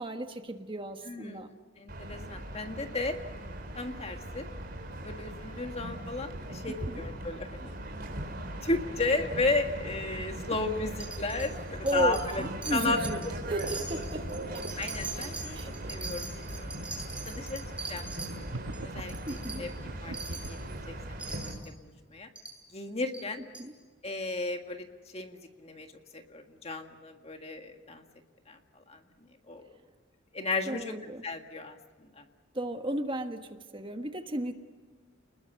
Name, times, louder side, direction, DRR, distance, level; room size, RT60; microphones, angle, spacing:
voice 1, 0.0-1.5 6.7-7.0 11.8-13.2 13.5-14.2 14.5-14.7 15.5-15.7 19.3-19.6 23.6-23.7 30.6-31.2 32.5-34.5, right 1 dB, 25° right, 6 dB, 1.3 m, -34 dB
voice 2, 1.1-1.4 1.8-3.2 3.8-4.5 5.0-7.8 8.6-12.4 12.7-13.0 14.8-15.6 15.9-16.7 17.3-17.6 17.9-18.4 18.8-19.7 20.0-20.6 20.9-21.0 21.2-21.4 21.8-22.3 22.7-23.4 24.0-24.9 25.1-25.9 26.1-28.0 28.5-29.0 29.5-29.6 30.3-30.9 31.2-32.2, left 3 dB, 30° left, 5 dB, 1.8 m, -34 dB
sound 1, 1.9-21.5, right 1 dB, 45° right, 4.2 m, -39 dB
Wind chime, 11.0-11.5 11.9-12.4 12.6-13.3 13.6-18.3 18.7-18.8 19.1-19.6 20.1-20.5 21.2-21.7 22.4-22.6 23.1-23.2 23.5-23.6, right 3 dB, 5° right, 7.6 m, -41 dB
sound 2, 18.5-20.7, right 2 dB, 85° right, 1.1 m, -41 dB
30.0 x 21.0 x 7.0 m, 1.4 s
head